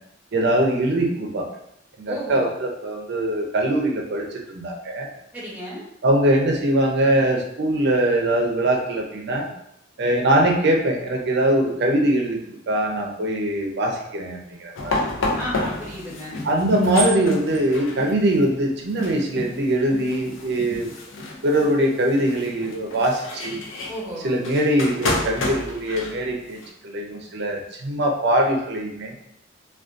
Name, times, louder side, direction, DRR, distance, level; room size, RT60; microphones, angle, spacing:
voice 1, 0.3-1.5 2.0-5.1 6.0-9.5 10.0-15.0 16.4-20.9 21.4-23.6 24.2-29.1, right 1 dB, 60° right, 1 dB, 0.5 m, -22 dB
voice 2, 2.1-2.5 5.3-5.8 15.3-16.4 23.9-24.4, equal, 10° right, -6 dB, 0.8 m, -33 dB
sound 1, 14.8-26.7, left 2 dB, 80° left, 0.5 m, -30 dB
2.5 x 2.3 x 2.4 m, 0.75 s
head